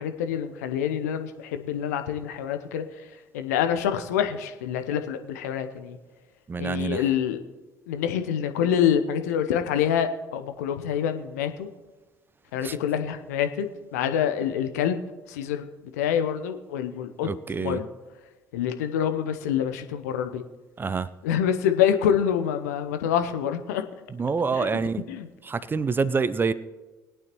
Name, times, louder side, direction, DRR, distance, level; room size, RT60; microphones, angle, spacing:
voice 1, 0.0-2.8 3.3-6.0 6.6-7.4 7.9-11.7 12.5-13.7 13.9-15.0 15.3-15.7 16.0-17.3 17.6-17.9 18.5-20.4 21.2-23.8 24.6-24.7 25.1-25.3, left 9 dB, 70° left, 8 dB, 0.8 m, -26 dB
voice 2, 6.5-7.1 12.6-12.8 17.2-17.8 20.8-21.1 24.1-25.0 25.4-26.5, right 4 dB, 25° right, 17 dB, 0.6 m, -26 dB
20.5 x 8.9 x 3.0 m, 1.2 s
figure-of-eight pair, 55°, 9 cm